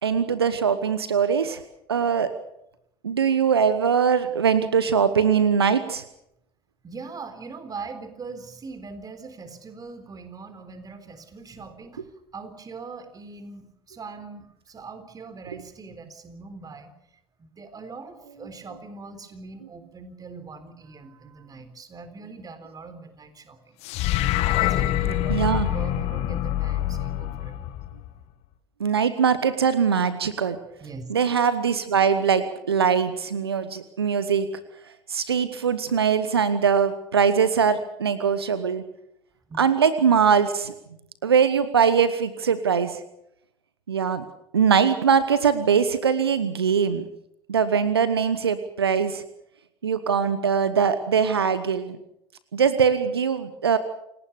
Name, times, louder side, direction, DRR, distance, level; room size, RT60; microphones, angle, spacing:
voice 1, 0.0-1.6 1.9-2.3 3.0-6.0 25.3-25.7 28.8-30.6 31.1-34.5 35.1-38.8 39.5-40.7 41.2-43.0 43.9-44.2 44.5-47.0 47.5-49.2 49.8-52.0 52.5-53.8, right 6 dB, 80° right, 13 dB, 1.1 m, -22 dB
voice 2, 6.8-12.1 12.3-16.9 17.4-23.8 24.1-27.5 30.8-31.0 39.5-39.6, right 4 dB, 30° right, 10 dB, 3.8 m, -41 dB
sound 1, 23.8-28.2, left 13 dB, 55° left, 1.7 m, -25 dB
28.5 x 18.5 x 6.9 m, 0.78 s
figure-of-eight pair, 60°, 13 cm